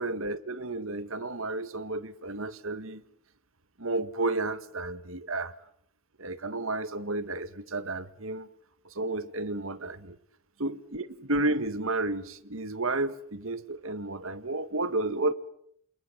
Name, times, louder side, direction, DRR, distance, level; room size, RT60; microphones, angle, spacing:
voice 1, 0.0-3.0 3.8-5.5 6.2-8.5 9.0-10.2 10.6-15.3, right 2 dB, 65° right, 1.8 m, -32 dB
29.0 x 27.0 x 7.4 m
head